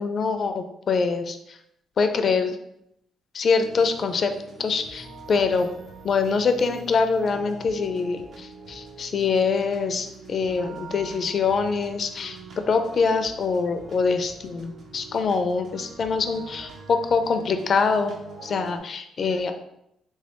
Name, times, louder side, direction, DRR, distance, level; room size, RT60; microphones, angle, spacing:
voice 1, 0.0-1.6 2.0-2.6 3.3-4.3 4.6-5.7 6.0-18.1 18.4-19.5, left 5 dB, 50° left, 7 dB, 0.4 m, -24 dB
sound 1, 3.6-18.8, right 3 dB, 60° right, 0.7 m, -44 dB
3.3 x 3.1 x 3.0 m, 0.79 s
cardioid pair, 90°, 0 cm